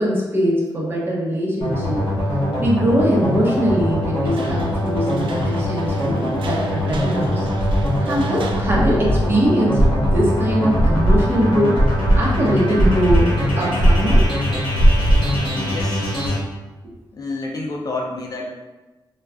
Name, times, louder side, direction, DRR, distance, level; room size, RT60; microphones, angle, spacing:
voice 1, 0.0-2.0 2.6-7.5 8.0-11.8 12.1-14.2, equal, 25° right, -5 dB, 0.8 m, -21 dB
sound 1, 1.6-16.4, left 1 dB, 65° left, 1.0 m, -23 dB
sound 2, 4.2-9.5, equal, 70° right, 0.4 m, -29 dB
sound 3, 9.8-10.3 10.8-15.4, right 1 dB, 50° right, 1.0 m, -16 dB
voice 2, 15.7-16.1 17.1-18.6, left 2 dB, 45° left, -1 dB, 0.4 m, -29 dB
3.6 x 2.3 x 2.4 m, 1.2 s
wide cardioid pair, 120°, 9 cm